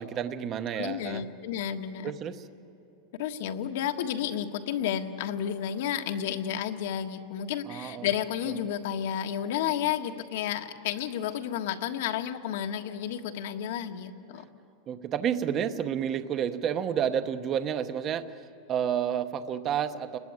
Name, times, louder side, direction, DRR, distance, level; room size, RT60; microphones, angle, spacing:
voice 1, 0.0-1.2 2.0-2.5 7.7-8.1 8.5-8.6 14.9-18.3 18.7-20.2, right 9 dB, 25° right, 9 dB, 0.9 m, -30 dB
voice 2, 0.7-2.1 3.2-14.4, left 9 dB, 60° left, 5 dB, 1.5 m, -31 dB
30.0 x 20.5 x 9.6 m, 2.9 s
supercardioid pair, 170°, 0 cm